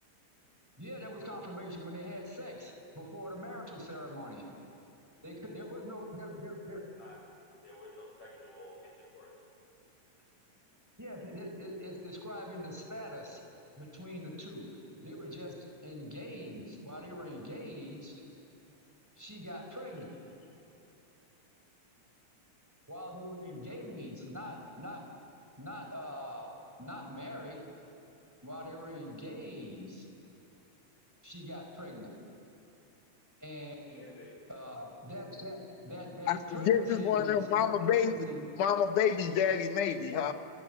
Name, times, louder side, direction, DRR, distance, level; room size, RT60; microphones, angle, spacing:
voice 1, 0.8-4.4 5.2-6.8 11.0-13.4 13.7-15.5 15.8-18.2 19.2-20.1 22.9-25.0 25.6-27.6 28.4-30.0 31.2-32.1 33.4-34.1 34.5-38.5, equal, 5° right, 1 dB, 4.7 m, -43 dB
voice 2, 7.6-9.3 33.9-34.4, left 1 dB, 65° left, -2 dB, 8.7 m, -52 dB
voice 3, 36.3-38.1 38.6-40.3, left 8 dB, 85° left, 8 dB, 2.8 m, -28 dB
28.5 x 26.0 x 8.0 m, 2.8 s
omnidirectional pair, 3.5 m